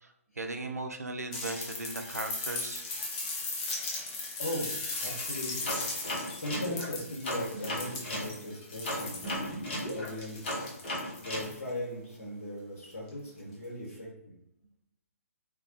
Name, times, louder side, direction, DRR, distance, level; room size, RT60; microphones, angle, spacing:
voice 1, 0.0-2.8, right 2 dB, 85° right, 5 dB, 0.4 m, -37 dB
sound 1, 1.3-11.7 13.1-13.2, left 3 dB, 25° left, 0.5 m, -38 dB
voice 2, 4.4-9.2 9.5-10.8 11.1-14.3, left 1 dB, 65° left, -6 dB, 0.9 m, -39 dB
sound 2, 5.6-8.3 8.8-11.5, equal, 45° left, 0.8 m, -35 dB
2.2 x 2.1 x 2.7 m, 0.81 s
figure-of-eight pair, 135°, 8 cm